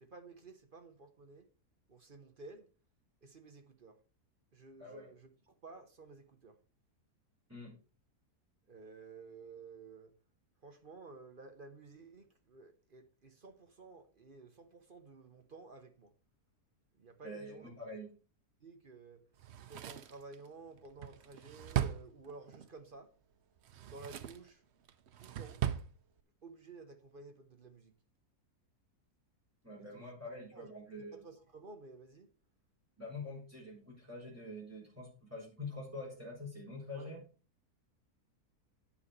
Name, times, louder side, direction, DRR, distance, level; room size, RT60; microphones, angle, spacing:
voice 1, 0.0-1.5 1.9-2.7 3.2-4.0 4.5-6.6 8.7-10.1 10.6-16.1 16.9-17.7 18.6-19.2 19.7-23.1 23.9-24.6 25.2-25.6 26.4-27.9 29.8-30.0 30.5-30.7 31.1-32.3 36.9-37.1, right 3 dB, 40° right, 0.9 m, -53 dB
voice 2, 4.8-5.1 7.5-7.8 17.2-18.1 29.6-31.2 33.0-37.2, left 2 dB, 10° right, 3.6 m, -46 dB
Drawer open or close, 19.4-22.7 23.6-24.5 24.9-25.9 26.2-26.3, right 10 dB, 60° right, 0.7 m, -38 dB
9.8 x 6.4 x 4.1 m
omnidirectional pair, 1.7 m